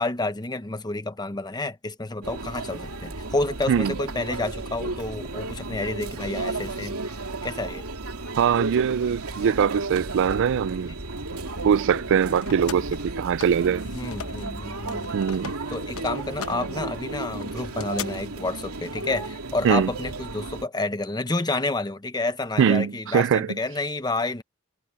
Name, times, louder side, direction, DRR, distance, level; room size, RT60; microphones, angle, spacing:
voice 1, 0.0-7.0 7.4-7.8 13.9-15.1 15.7-24.4, left 2 dB, 20° left, 1.0 m, -29 dB
Conversation / Chatter / Crowd, 2.2-20.6, right 2 dB, 80° right, 2.8 m, -33 dB
voice 2, 8.4-10.9 11.6-13.8 15.1-15.6 19.6-19.9 22.6-23.6, right 7 dB, 60° right, 0.3 m, -22 dB
sound 1, 11.9-14.5 14.8-18.1, left 7 dB, 65° left, 1.0 m, -40 dB
head